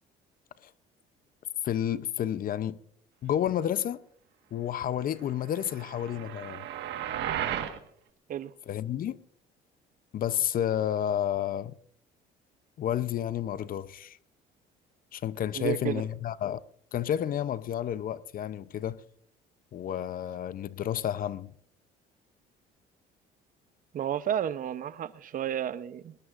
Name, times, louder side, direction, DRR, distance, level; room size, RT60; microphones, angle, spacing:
voice 1, 1.6-2.8 3.2-4.0 4.5-6.6 8.7-9.2 10.1-11.7 12.8-14.2 15.1-16.6 16.9-19.0 19.7-21.5, left 10 dB, 50° left, 0.6 m, -30 dB
sound 1, 5.5-7.8, right 10 dB, 70° right, 1.5 m, -34 dB
voice 2, 15.5-16.0 23.9-26.2, right 10 dB, 45° right, 0.7 m, -32 dB
21.0 x 20.0 x 2.5 m
supercardioid pair, 85°, 19 cm